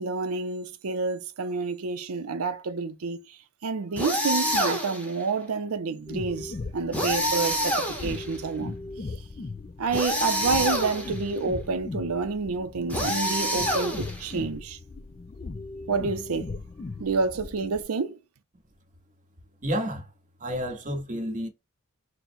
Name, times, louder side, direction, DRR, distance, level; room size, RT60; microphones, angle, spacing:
voice 1, 0.0-8.7 9.8-14.8 15.9-16.5 17.0-18.2, right 4 dB, 85° right, 0.5 m, -29 dB
sound 1, 4.0-5.1 6.9-8.4 9.9-11.2 12.9-14.3, equal, 5° left, 0.8 m, -27 dB
sound 2, 6.1-17.8, left 3 dB, 30° left, 0.3 m, -38 dB
voice 2, 19.6-20.1 20.4-21.5, equal, 35° right, 1.0 m, -30 dB
3.9 x 2.1 x 4.3 m
head